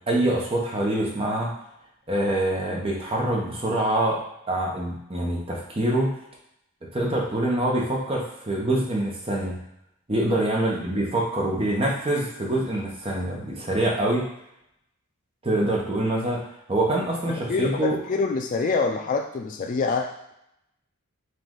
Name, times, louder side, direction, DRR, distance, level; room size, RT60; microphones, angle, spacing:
voice 1, 0.1-1.5 2.1-4.2 4.5-6.1 6.9-9.6 10.1-14.3 15.4-16.4 16.7-18.0, right 1 dB, 25° right, -2 dB, 0.8 m, -25 dB
voice 2, 17.3-20.3, left 4 dB, 35° left, 3 dB, 0.3 m, -26 dB
5.1 x 2.5 x 3.7 m, 0.79 s
head